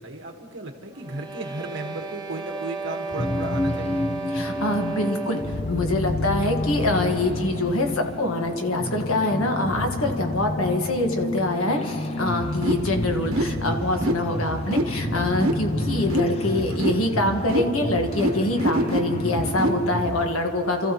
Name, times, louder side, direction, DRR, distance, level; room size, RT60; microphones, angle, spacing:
voice 1, 0.0-4.1 16.6-17.3, right 2 dB, 60° right, 2 dB, 1.5 m, -35 dB
sound 1, 0.9-5.7, right 3 dB, 20° right, 0.8 m, -33 dB
sound 2, 3.2-19.9, left 2 dB, 30° left, 0.4 m, -30 dB
voice 2, 4.3-5.4 5.7-20.9, left 2 dB, 75° left, 4 dB, 1.5 m, -25 dB
sound 3, 12.1-20.2, right 1 dB, 85° right, 1.1 m, -27 dB
29.5 x 14.0 x 3.0 m, 2.4 s
head